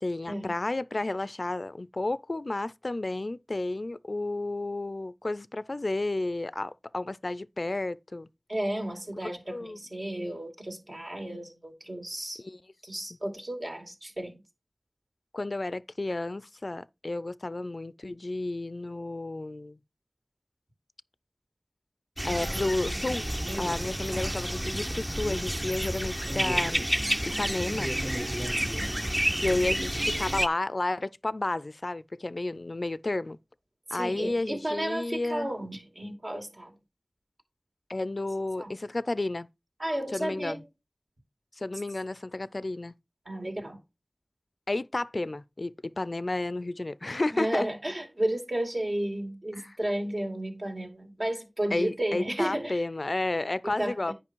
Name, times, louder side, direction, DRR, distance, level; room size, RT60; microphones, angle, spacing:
voice 1, 0.0-8.3 9.2-9.8 12.4-12.6 15.3-19.8 22.2-23.2 23.6-26.8 27.2-28.0 29.4-33.4 33.9-35.5 37.9-39.5 40.1-40.6 41.6-42.9 44.7-47.7 49.6-49.7 51.7-54.1, left 2 dB, 65° left, 0.4 m, -32 dB
voice 2, 8.5-12.4 12.8-14.4 33.9-36.7 38.6-38.7 39.8-40.6 43.3-43.8 47.3-52.8 53.6-54.1, right 1 dB, 60° right, 2.4 m, -33 dB
sound 1, 22.2-30.5, equal, 20° right, 0.7 m, -30 dB
9.8 x 5.2 x 4.5 m
wide cardioid pair, 40°, 0 cm